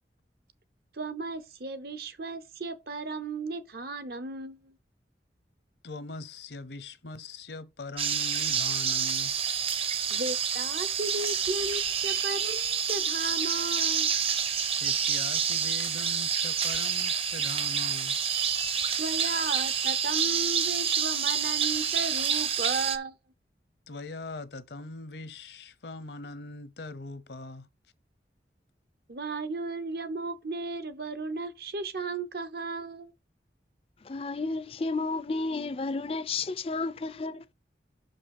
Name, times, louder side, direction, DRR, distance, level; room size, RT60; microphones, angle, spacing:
voice 1, 0.9-4.8 10.1-14.1 19.0-23.2 29.1-33.1, right 3 dB, 60° right, 0.8 m, -35 dB
voice 2, 5.8-9.3 14.8-18.2 23.9-27.7, left 2 dB, 70° left, 0.8 m, -41 dB
sound 1, 8.0-23.0, right 7 dB, 35° right, 0.7 m, -28 dB
voice 3, 34.0-37.4, left 3 dB, 30° left, 0.4 m, -32 dB
5.9 x 5.2 x 5.4 m
head